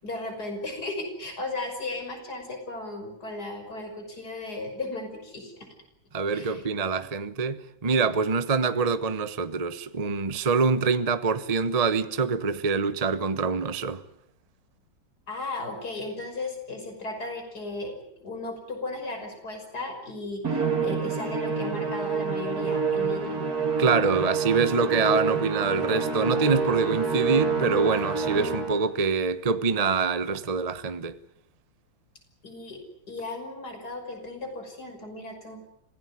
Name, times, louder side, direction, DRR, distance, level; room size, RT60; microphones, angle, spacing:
voice 1, 0.0-5.7 6.3-6.6 15.3-17.9 18.2-23.4 32.4-32.8 33.1-35.6, left 2 dB, 50° left, 6.2 m, -35 dB
voice 2, 6.1-14.0 23.8-31.2, right 4 dB, 25° right, 0.9 m, -25 dB
Musical instrument, 20.4-28.9, right 5 dB, 50° right, 3.1 m, -27 dB
25.5 x 17.5 x 9.9 m
omnidirectional pair, 2.1 m